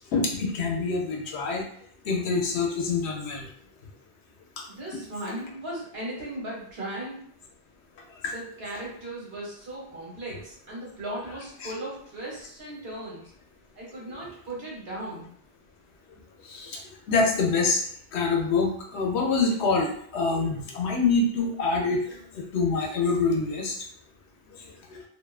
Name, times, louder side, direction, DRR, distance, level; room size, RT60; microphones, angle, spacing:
voice 1, 0.1-1.6 2.1-3.5 8.2-8.3 16.5-16.8 17.1-17.8 18.1-22.2 22.5-23.7, left 4 dB, 80° left, 1 dB, 0.9 m, -25 dB
voice 2, 4.7-7.2 8.3-13.3 13.8-15.3, right 1 dB, 65° right, -5 dB, 1.2 m, -37 dB
2.6 x 2.2 x 2.3 m, 0.62 s
omnidirectional pair, 1.1 m